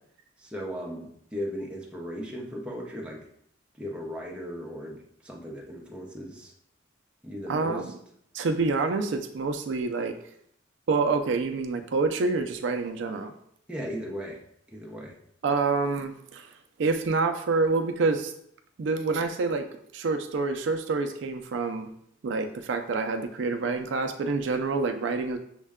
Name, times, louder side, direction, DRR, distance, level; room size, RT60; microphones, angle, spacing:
voice 1, 0.4-3.3 3.7-6.5 7.2-7.9 13.7-14.4 14.7-15.2, equal, 5° right, -3 dB, 0.6 m, -37 dB
voice 2, 7.5-7.9 8.3-10.1 10.9-13.3 15.4-16.5 16.8-18.3 18.8-19.6 19.9-21.9 22.2-25.4, right 4 dB, 65° right, 6 dB, 0.4 m, -27 dB
6.3 x 2.2 x 3.5 m, 0.69 s
head